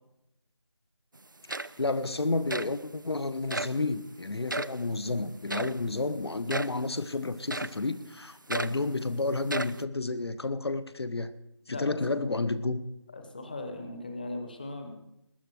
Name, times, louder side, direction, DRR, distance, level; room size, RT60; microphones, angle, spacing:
sound 1, 1.2-1.3 1.5-2.0 2.5-2.8 3.5-3.8 4.5-4.8 5.5-5.8 6.5-6.8 7.5-7.8 8.5-8.8 9.4-9.8, right 2 dB, 45° right, 0.4 m, -34 dB
voice 1, 1.8-11.3 11.7-12.8, left 3 dB, 60° left, 13 dB, 0.8 m, -31 dB
voice 2, 11.7-12.5 13.1-15.1, left 2 dB, 20° left, 5 dB, 0.9 m, -39 dB
19.5 x 8.8 x 4.7 m, 0.86 s
figure-of-eight pair, 175°, 15 cm